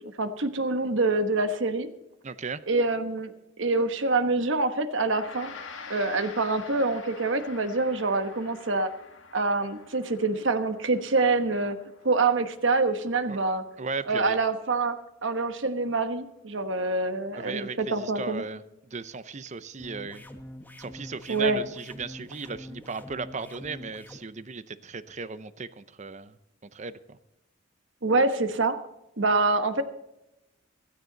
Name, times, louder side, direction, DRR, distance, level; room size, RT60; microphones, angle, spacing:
voice 1, 0.2-1.9 2.7-3.3 3.6-5.5 5.9-8.9 9.3-11.8 12.0-13.6 14.1-15.0 15.2-18.4 21.3-21.6 28.0-28.8 29.2-29.8, right 3 dB, 65° right, 9 dB, 1.2 m, -26 dB
voice 2, 2.2-2.6 13.3-13.4 13.8-14.4 17.4-20.3 20.8-26.4 26.7-27.2, right 4 dB, 35° right, 15 dB, 0.6 m, -36 dB
Gong, 5.0-14.5, left 4 dB, 75° left, 2.1 m, -47 dB
sound 1, 19.8-24.2, equal, 10° left, 1.2 m, -44 dB
16.0 x 13.0 x 4.0 m, 0.89 s
head